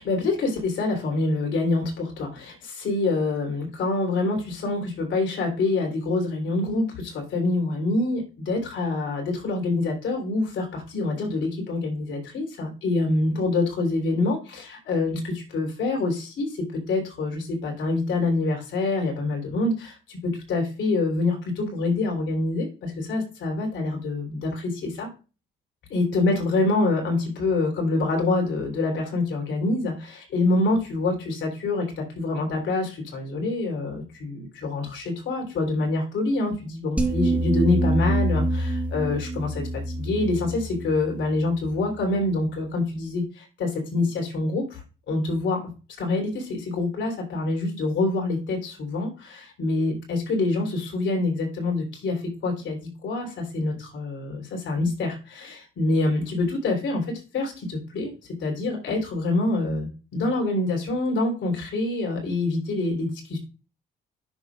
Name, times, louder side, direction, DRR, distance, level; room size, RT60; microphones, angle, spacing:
voice 1, 0.0-25.1 25.9-45.6 46.0-57.1 57.3-63.4, left 2 dB, 70° left, 1 dB, 3.4 m, -26 dB
sound 1, 37.0-42.2, right 1 dB, 5° right, 1.2 m, -26 dB
9.6 x 6.8 x 2.4 m, 0.33 s
cardioid pair, 90°, 20 cm